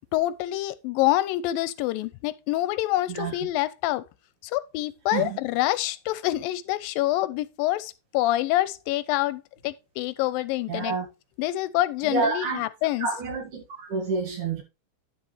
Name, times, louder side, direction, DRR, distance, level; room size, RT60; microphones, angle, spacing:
voice 1, 0.1-4.0 4.4-11.0 11.4-13.1, left 16 dB, 85° left, 2.3 m, -26 dB
voice 2, 3.1-3.5 5.1-5.4 10.7-11.1 12.0-12.6 13.0-14.6, right 4 dB, 65° right, 3.1 m, -29 dB
10.0 x 6.8 x 3.2 m
omnidirectional pair, 4.0 m